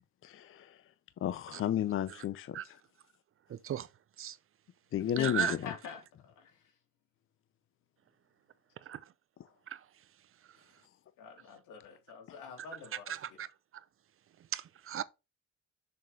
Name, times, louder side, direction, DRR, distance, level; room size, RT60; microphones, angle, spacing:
voice 1, 0.2-0.8 1.2-2.8 4.9-5.7 12.3-12.4, left 10 dB, 45° left, 0.6 m, -33 dB
voice 2, 3.5-3.9 4.2-4.4 5.2-5.5 9.7-9.8 13.1-13.5 14.5-15.0, right 10 dB, 45° right, 0.7 m, -35 dB
voice 3, 5.2-6.6 11.2-13.2, left 7 dB, 85° left, 2.9 m, -44 dB
6.6 x 6.5 x 3.3 m
cardioid pair, 110°, 30 cm